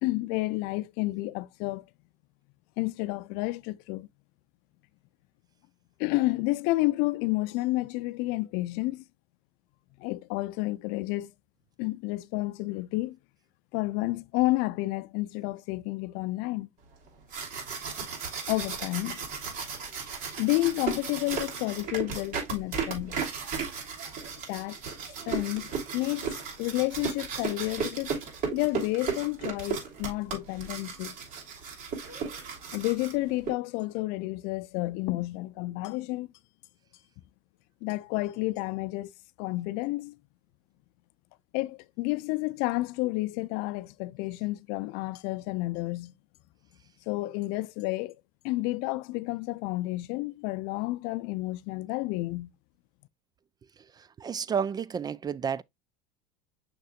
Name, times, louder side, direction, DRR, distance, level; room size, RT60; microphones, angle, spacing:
voice 1, 0.0-1.8 2.8-4.1 6.0-9.0 10.0-11.3 11.8-13.2 13.7-16.7 18.0-18.1 18.5-19.2 20.4-23.1 24.5-24.8 25.3-28.1 28.5-31.1 32.7-36.3 37.8-39.1 39.4-40.1 41.5-46.1 47.1-48.1 48.4-52.5, left 20 dB, 60° left, 0.5 m, -30 dB
sound 1, 17.1-33.5, right 6 dB, 50° right, 3.2 m, -35 dB
voice 2, 54.0-55.6, right 7 dB, 20° right, 0.4 m, -31 dB
6.6 x 6.0 x 2.4 m
hypercardioid pair, 95°, 18 cm